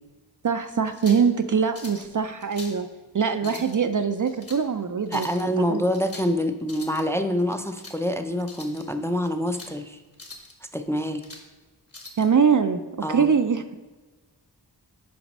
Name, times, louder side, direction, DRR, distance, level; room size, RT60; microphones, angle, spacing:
voice 1, 0.4-2.9 3.1-5.8 12.2-12.8 13.1-13.6, right 6 dB, 50° right, 9 dB, 0.5 m, -23 dB
sound 1, 0.8-1.3 1.7-2.1 2.4-2.8 3.3-3.8 4.3-4.6 5.1-5.4 5.9-6.3 6.6-7.0 7.5-8.0 8.4-8.8 9.3-9.7 10.1-10.5 11.0-11.5 11.9-12.3, left 2 dB, 35° left, 1.3 m, -43 dB
voice 2, 5.1-10.0 10.6-11.2 13.0-13.3, equal, 5° left, 6 dB, 0.5 m, -26 dB
6.0 x 5.0 x 5.3 m, 1.3 s
wide cardioid pair, 45°, 41 cm